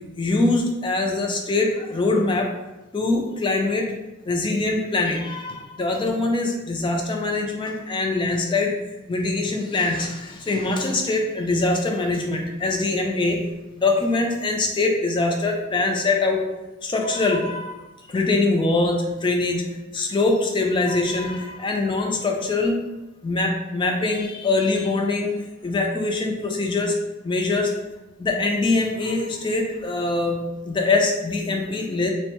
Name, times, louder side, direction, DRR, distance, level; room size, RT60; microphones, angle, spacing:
voice 1, 0.2-2.5 2.9-4.0 4.3-8.7 9.1-13.4 13.8-16.4 16.8-17.8 18.1-19.7 19.9-22.8 23.2-25.3 25.6-26.9 27.2-27.7 28.2-32.1, left 3 dB, 25° left, 2 dB, 0.3 m, -23 dB
3.5 x 2.1 x 2.9 m, 1.0 s
head